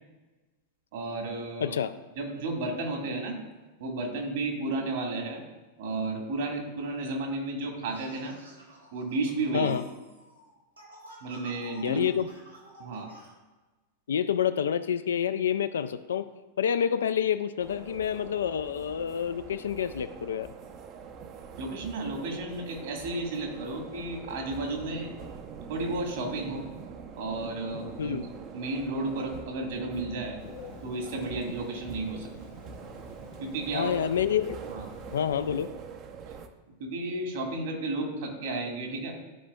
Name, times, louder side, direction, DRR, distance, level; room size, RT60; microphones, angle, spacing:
voice 1, 0.9-1.7 2.1-3.4 3.8-5.4 5.8-8.3 8.9-9.7 11.2-12.1 12.8-13.1 21.6-25.1 25.7-26.7 27.1-28.2 28.5-30.4 30.8-32.3 33.4-34.1 34.7-34.8 36.8-39.2, right 2 dB, 55° right, 1 dB, 1.7 m, -33 dB
voice 2, 1.6-1.9 9.5-9.8 11.8-12.3 14.1-16.3 16.6-20.5 28.0-28.2 33.7-34.6 35.1-35.7, left 8 dB, 65° left, 12 dB, 0.3 m, -28 dB
sound 1, 7.9-13.3, equal, 80° right, 1.9 m, -50 dB
sound 2, 17.6-36.5, right 5 dB, 35° right, 0.6 m, -44 dB
Telephone, 30.4-35.5, left 3 dB, 45° left, 1.0 m, -48 dB
12.5 x 5.0 x 2.3 m, 1.2 s
figure-of-eight pair, 90°, 0 cm